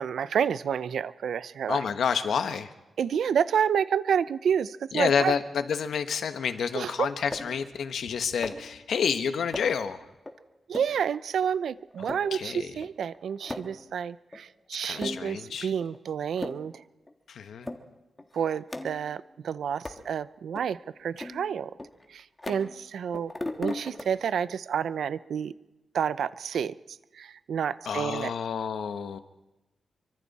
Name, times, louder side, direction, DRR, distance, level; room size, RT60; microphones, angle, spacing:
voice 1, 0.0-1.8 3.0-5.3 6.7-7.1 10.7-16.8 18.3-21.7 22.1-23.3 23.6-25.5 25.9-28.3, right 8 dB, 80° right, 15 dB, 0.7 m, -29 dB
voice 2, 1.7-2.7 4.9-10.0 12.0-12.7 14.8-15.7 17.3-17.7 27.8-29.2, left 7 dB, 80° left, 9 dB, 1.3 m, -29 dB
sound 1, 7.3-7.6 8.4-8.8 9.5-9.9 10.3-10.4 10.7-11.0 11.4-11.5 11.9-12.3 12.8-12.9 13.1-13.8 14.3-14.4 14.9-15.4 15.8-16.0 16.3-16.7 17.1-17.2 17.7-17.8 18.2-19.2 19.9-20.1 20.6-20.7 21.2-22.9 23.1-24.0, left 2 dB, 15° left, 1.6 m, -38 dB
26.5 x 24.5 x 4.3 m, 1.0 s
wide cardioid pair, 175°, 0 cm